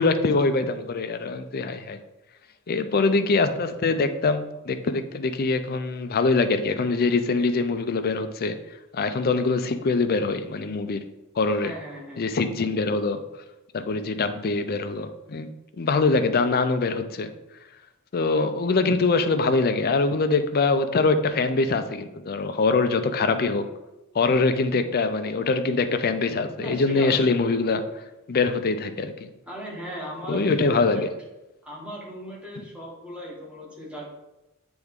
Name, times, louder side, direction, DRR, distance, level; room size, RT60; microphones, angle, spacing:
voice 1, 0.0-2.0 2.7-8.6 8.9-11.0 11.4-11.7 12.2-13.2 13.7-15.5 15.8-17.3 18.1-23.6 24.1-28.0 28.3-29.1 30.3-31.1, left 3 dB, 45° left, 9 dB, 0.5 m, -23 dB
voice 2, 11.6-12.2 26.6-27.4 29.5-31.0 31.6-34.1, equal, 5° right, -4 dB, 1.3 m, -37 dB
8.0 x 3.5 x 3.6 m, 0.99 s
head